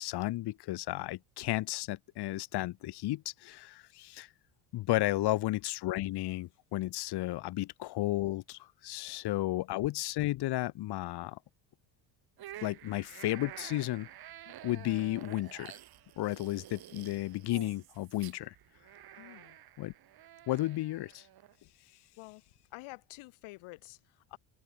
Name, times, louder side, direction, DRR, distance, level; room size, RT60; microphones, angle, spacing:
voice 1, 0.0-4.3 4.7-11.4 12.6-14.1 14.6-15.8 16.2-18.5 19.8-19.9 20.5-21.2, left 16 dB, 55° left, 1.2 m, -33 dB
sound 1, 12.4-21.6, right 13 dB, 45° right, 2.0 m, -50 dB
voice 2, 19.2-19.6 22.2-22.4 22.7-24.4, left 22 dB, 75° left, 5.0 m, -49 dB
open air
cardioid pair, 110°, 49 cm